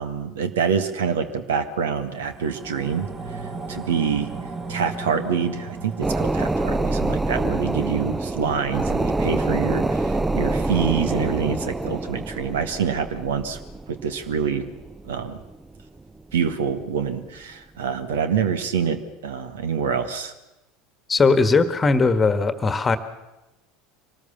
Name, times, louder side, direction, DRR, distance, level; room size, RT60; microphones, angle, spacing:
voice 1, 0.0-3.4 3.7-4.3 4.7-13.6 13.9-14.7 15.0-15.4 16.3-20.3, right 7 dB, 70° right, 10 dB, 1.7 m, -26 dB
sound 1, 1.9-12.5 12.9-13.0, right 4 dB, 30° right, 2.6 m, -38 dB
sound 2, 6.0-16.0 16.4-16.5, right 2 dB, 10° right, 0.7 m, -26 dB
voice 2, 21.1-23.0, left 4 dB, 20° left, 11 dB, 1.6 m, -19 dB
24.5 x 19.0 x 7.2 m, 1.0 s
figure-of-eight pair, 70°, 0 cm